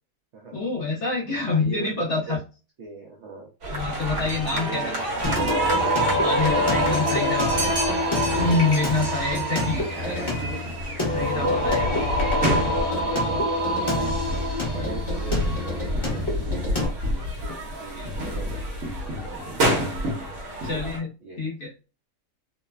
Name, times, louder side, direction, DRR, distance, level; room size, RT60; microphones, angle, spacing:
voice 1, 0.5-2.4 3.7-4.9 6.2-7.5 8.4-10.1 11.1-11.9 17.5-17.6 18.0-18.1 20.6-21.1 21.4-21.7, left 3 dB, 60° left, -1 dB, 0.7 m, -26 dB
voice 2, 1.5-2.4 2.8-3.5 4.5-5.7 6.7-7.8 8.4-9.1 10.0-10.7 11.3-16.6 17.4-18.6 19.3-19.6 21.2-21.5, right 4 dB, 70° right, 0 dB, 0.6 m, -39 dB
sound 1, 3.6-21.0, right 1 dB, 55° right, 1.0 m, -28 dB
Singing, 5.2-16.9, left 1 dB, 20° left, 0.7 m, -26 dB
3.0 x 2.1 x 2.3 m, 0.32 s
omnidirectional pair, 1.8 m